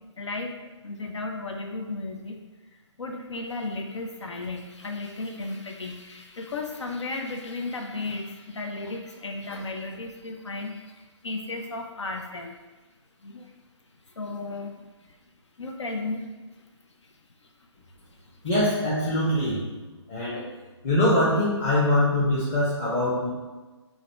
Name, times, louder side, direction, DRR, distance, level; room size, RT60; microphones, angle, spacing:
voice 1, 0.2-2.4 2.7-12.6 13.2-13.5 14.1-15.2 15.6-16.6 17.0-17.2 17.4-17.5 18.1-18.4, left 2 dB, 70° left, 3 dB, 0.5 m, -35 dB
voice 2, 18.4-19.6 20.1-20.4 20.8-23.3, left 1 dB, 25° left, -8 dB, 0.9 m, -23 dB
3.9 x 2.6 x 4.4 m, 1.2 s
figure-of-eight pair, 140°, 15 cm